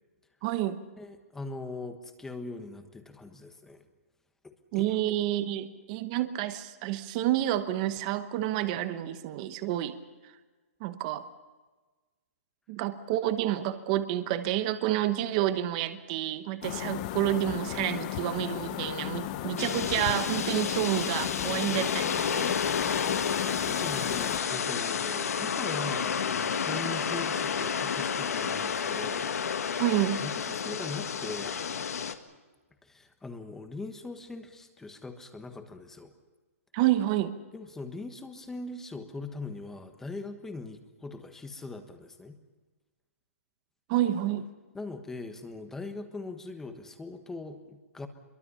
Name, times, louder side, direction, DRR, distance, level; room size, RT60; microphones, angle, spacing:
voice 1, 0.4-0.8 4.7-10.0 10.8-11.3 12.7-22.6 29.8-30.2 36.7-37.3 43.9-44.5, right 13 dB, 25° right, 11 dB, 1.1 m, -29 dB
voice 2, 1.0-3.8 4.4-4.8 23.4-29.3 29.6-29.8 30.2-31.6 32.8-36.1 37.5-42.4 44.7-48.1, left 3 dB, 5° left, 7 dB, 1.3 m, -41 dB
sound 1, 16.6-24.4, left 14 dB, 30° left, 0.8 m, -35 dB
sound 2, 19.6-32.1, left 7 dB, 80° left, 1.7 m, -30 dB
25.5 x 23.0 x 5.7 m, 1.3 s
hypercardioid pair, 165°, 8 cm